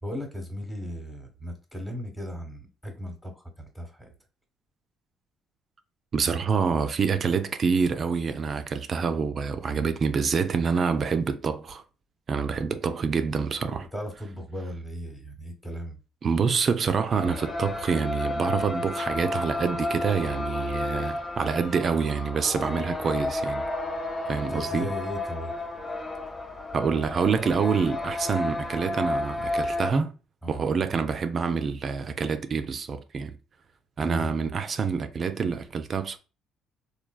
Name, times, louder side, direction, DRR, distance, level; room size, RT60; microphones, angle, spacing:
voice 1, 0.0-4.1 13.9-16.0 24.5-25.5 30.4-30.6 34.0-34.3, equal, 5° left, 1.0 m, -36 dB
voice 2, 6.1-11.8 12.3-13.9 16.2-23.6 24.3-24.9 26.7-30.1 30.5-33.4 34.0-36.2, right 5 dB, 45° right, 0.4 m, -26 dB
sound 1, 17.1-29.9, left 2 dB, 30° left, 0.6 m, -32 dB
3.2 x 2.2 x 2.2 m
supercardioid pair, 65°, 0 cm